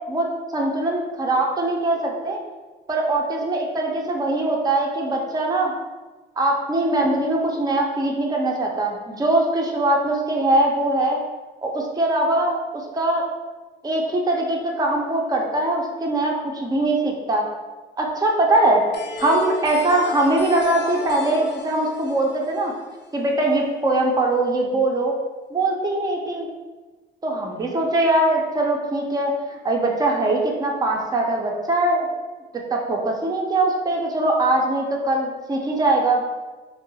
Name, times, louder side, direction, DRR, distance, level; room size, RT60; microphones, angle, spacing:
voice 1, 0.5-2.4 2.9-5.7 6.4-11.2 11.6-13.2 13.8-17.4 18.0-18.8 19.2-22.7 23.1-25.1 25.5-26.5 27.2-32.1 32.7-36.2, right 2 dB, 20° right, -1 dB, 0.5 m, -22 dB
sound 1, 18.9-23.6, left 4 dB, 60° left, 0.4 m, -36 dB
3.6 x 2.0 x 2.7 m, 1.2 s
cardioid pair, 90°, 20 cm